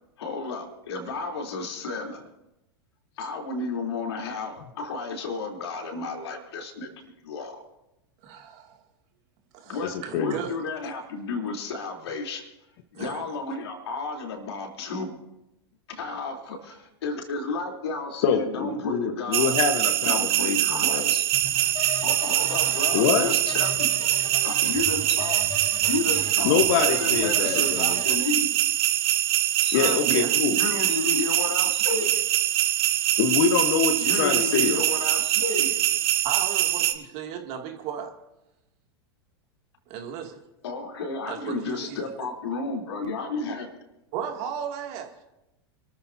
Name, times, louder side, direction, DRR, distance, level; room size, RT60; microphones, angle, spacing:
voice 1, 0.2-2.2 3.2-7.6 9.6-12.5 12.9-15.1 15.9-19.6 20.0-21.3 22.0-23.9 24.4-25.4 25.8-28.5 29.6-30.1 30.5-32.2 34.0-35.8 40.6-43.7, left 3 dB, 75° left, 1 dB, 3.6 m, -32 dB
voice 2, 8.2-8.8 9.5-10.6 12.9-13.2 22.3-22.8 29.8-30.4 36.2-38.1 39.9-40.4 41.3-42.0 44.1-45.1, right 8 dB, 50° right, 3 dB, 2.6 m, -35 dB
voice 3, 18.2-20.6 20.9-21.0 22.9-23.3 26.4-27.9 29.7-30.6 33.2-34.8, left 7 dB, 55° left, 6 dB, 1.3 m, -24 dB
sound 1, 19.3-36.9, right 13 dB, 65° right, 1.2 m, -24 dB
sound 2, 21.3-28.2, left 3 dB, 40° left, 4.9 m, -38 dB
27.5 x 13.5 x 2.8 m, 0.92 s
hypercardioid pair, 100°, 14 cm